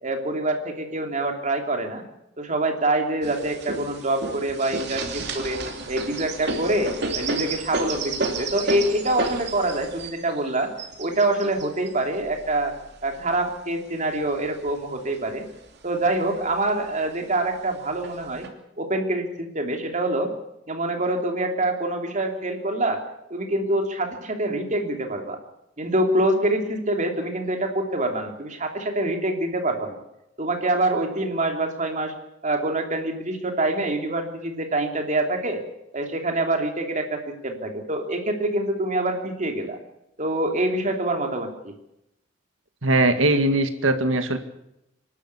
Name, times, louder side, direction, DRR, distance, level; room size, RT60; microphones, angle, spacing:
voice 1, 0.0-2.0 2.4-5.6 5.9-10.7 11.0-12.7 13.0-15.5 15.8-18.5 18.8-20.3 20.7-23.0 23.3-25.4 25.8-30.0 30.4-32.1 32.4-35.6 35.9-39.8 40.2-41.7, right 2 dB, 40° right, 4 dB, 3.0 m, -25 dB
sound 1, 3.2-13.5 14.1-15.1 15.5-15.6 15.9-16.6 17.3-17.4 18.0-18.5, right 3 dB, 60° right, 2.9 m, -32 dB
voice 2, 42.8-44.4, right 2 dB, 80° right, 8 dB, 2.0 m, -20 dB
25.5 x 12.0 x 8.3 m, 0.85 s
head